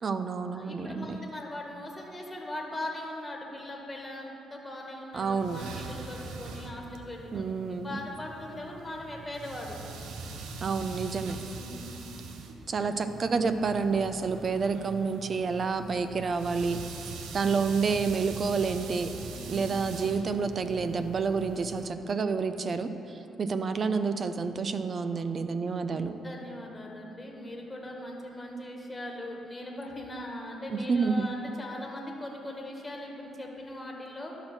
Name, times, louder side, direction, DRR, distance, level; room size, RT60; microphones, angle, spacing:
voice 1, 0.0-1.2 5.1-5.6 7.3-7.9 10.6-11.4 12.7-16.8 17.3-19.1 19.5-22.9 23.4-26.2 30.7-31.3, right 5 dB, 45° right, 9 dB, 0.5 m, -29 dB
voice 2, 0.5-9.8 11.4-12.0 12.7-12.9 19.3-19.7 23.2-23.4 26.1-34.3, left 1 dB, 15° left, -1 dB, 1.7 m, -40 dB
sound 1, 5.1-21.9, right 3 dB, 85° right, 0.7 m, -43 dB
12.0 x 6.1 x 4.4 m, 2.9 s
cardioid pair, 90°, 0 cm